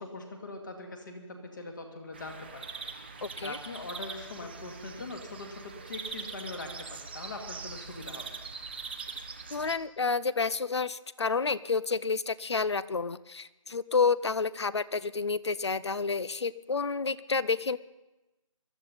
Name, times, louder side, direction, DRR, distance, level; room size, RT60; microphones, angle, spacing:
voice 1, 0.0-8.2, left 2 dB, 35° left, 3 dB, 2.1 m, -42 dB
sound 1, 2.1-9.8, right 5 dB, 20° right, 0.7 m, -42 dB
voice 2, 3.2-3.6 9.5-17.8, left 4 dB, 55° left, 18 dB, 0.6 m, -29 dB
22.0 x 13.0 x 4.1 m, 1.0 s
figure-of-eight pair, 165°, 17 cm